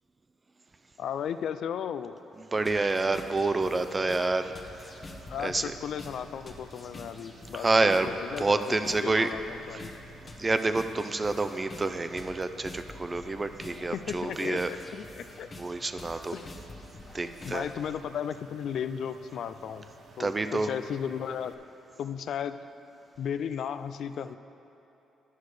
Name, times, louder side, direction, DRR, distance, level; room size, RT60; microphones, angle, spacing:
voice 1, 1.0-2.2 5.3-9.9 13.9-15.5 16.3-16.5 17.4-19.9 20.2-21.6 22.0-22.6 23.2-24.4, left 8 dB, 70° left, 12 dB, 0.3 m, -35 dB
voice 2, 2.5-4.5 5.4-5.7 7.5-8.1 8.4-9.3 10.4-14.7 15.6-16.4 17.1-17.7 20.2-20.7, right 3 dB, 25° right, 9 dB, 0.4 m, -28 dB
sound 1, 2.5-21.5, right 3 dB, 65° right, 0.8 m, -53 dB
sound 2, 2.7-17.9, left 2 dB, 35° left, 1.1 m, -48 dB
10.5 x 6.4 x 4.9 m, 3.0 s
cardioid pair, 90°, 0 cm